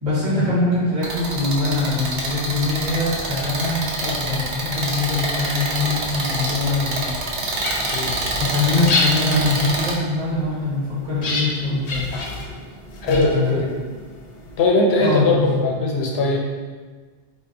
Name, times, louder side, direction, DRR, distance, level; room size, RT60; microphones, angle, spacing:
voice 1, 0.0-7.7 8.4-12.1 13.1-13.6 15.0-15.6, left 3 dB, 35° right, -10 dB, 1.2 m, -23 dB
sound 1, 1.0-9.9, right 2 dB, 75° right, 0.9 m, -26 dB
sound 2, 7.3-14.7, left 2 dB, 55° left, 0.5 m, -30 dB
voice 2, 13.0-13.8 14.6-16.4, left 2 dB, 80° left, -1 dB, 0.8 m, -20 dB
4.1 x 2.5 x 2.6 m, 1.4 s
omnidirectional pair, 1.0 m